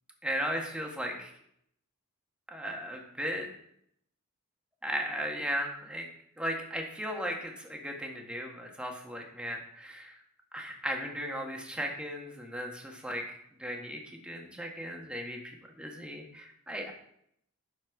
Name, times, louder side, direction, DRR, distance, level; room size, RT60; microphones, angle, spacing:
voice 1, 0.2-1.3 2.5-3.5 4.8-6.1 6.4-10.1 10.5-13.2 13.6-16.9, equal, 5° right, 1 dB, 1.4 m, -36 dB
11.5 x 4.2 x 4.6 m, 0.71 s
head